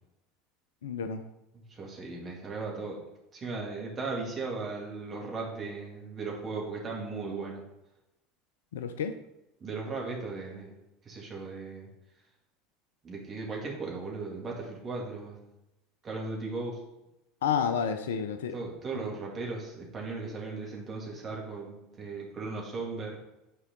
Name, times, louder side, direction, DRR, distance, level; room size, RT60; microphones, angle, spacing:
voice 1, 0.8-1.2 8.7-9.2 17.4-18.6, left 7 dB, 70° left, 9 dB, 0.5 m, -30 dB
voice 2, 1.7-3.0 3.3-7.6 9.6-10.7 11.1-11.9 13.0-15.4 16.0-16.8 18.5-23.2, right 3 dB, 30° right, -2 dB, 2.4 m, -37 dB
8.9 x 4.7 x 3.9 m, 0.93 s
figure-of-eight pair, 70°, 0 cm